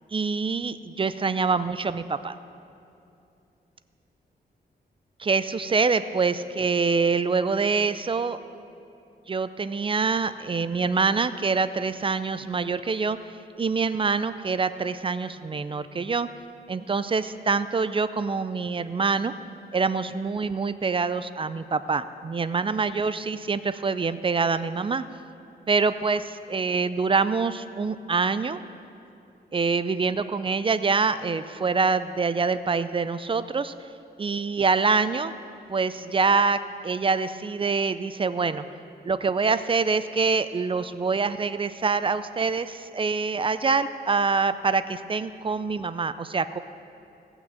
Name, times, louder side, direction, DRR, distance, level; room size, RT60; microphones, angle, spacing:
voice 1, 0.1-2.4 5.2-8.4 9.3-13.2 13.6-16.3 16.7-19.3 19.7-25.0 25.7-26.2 26.5-28.6 29.5-33.7 34.2-35.3 35.7-38.6 39.0-46.6, right 4 dB, 30° right, 13 dB, 0.4 m, -25 dB
17.0 x 6.0 x 7.7 m, 2.7 s
wide cardioid pair, 105°, 17 cm